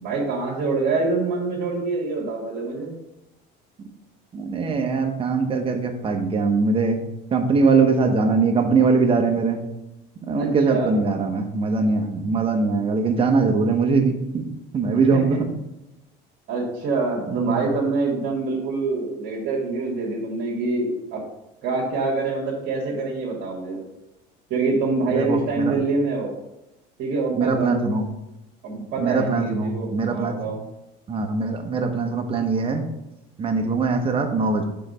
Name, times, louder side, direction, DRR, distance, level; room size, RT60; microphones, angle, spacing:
voice 1, 0.0-2.9 10.4-11.0 15.1-15.4 16.5-21.2 21.6-23.8 24.5-26.3 27.0-27.9 28.6-30.6, right 3 dB, 60° right, -5 dB, 1.8 m, -25 dB
voice 2, 4.3-7.0 7.3-9.6 10.3-14.5 14.7-15.5 17.3-17.7 25.1-25.7 27.3-28.0 29.0-30.4 31.1-32.8 33.4-34.6, right 4 dB, 25° right, 4 dB, 1.0 m, -21 dB
5.7 x 4.0 x 5.5 m, 0.92 s
cardioid pair, 125°, 20 cm